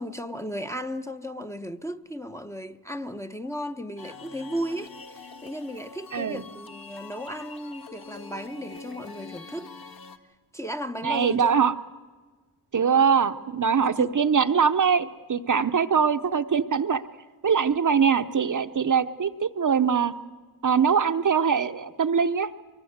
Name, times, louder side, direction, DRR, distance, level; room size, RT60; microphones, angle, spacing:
voice 1, 0.0-9.7 10.5-11.6 13.8-14.2, equal, 5° left, 0.8 m, -35 dB
sound 1, 4.0-10.2, left 4 dB, 55° left, 1.8 m, -44 dB
voice 2, 6.1-6.4 11.0-11.7 12.7-17.0 17.4-20.1 20.6-22.5, right 6 dB, 45° right, 0.8 m, -22 dB
24.0 x 23.5 x 8.0 m
wide cardioid pair, 95°, 42 cm